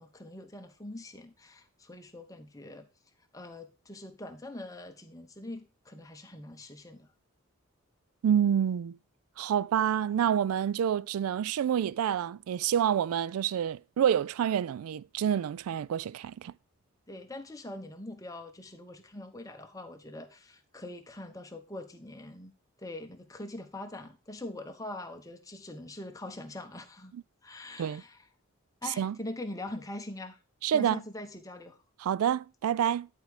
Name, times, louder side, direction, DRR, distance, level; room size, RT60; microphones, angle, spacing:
voice 1, 0.0-2.9 3.3-7.1 17.1-27.1 27.4-28.2 28.8-30.4 30.7-31.8, left 1 dB, 15° left, 0.9 m, -43 dB
voice 2, 8.2-9.0 9.4-16.5 27.8-28.0 29.0-29.2 30.6-31.0 32.0-33.1, right 9 dB, 90° right, 0.3 m, -28 dB
10.5 x 4.6 x 4.9 m
head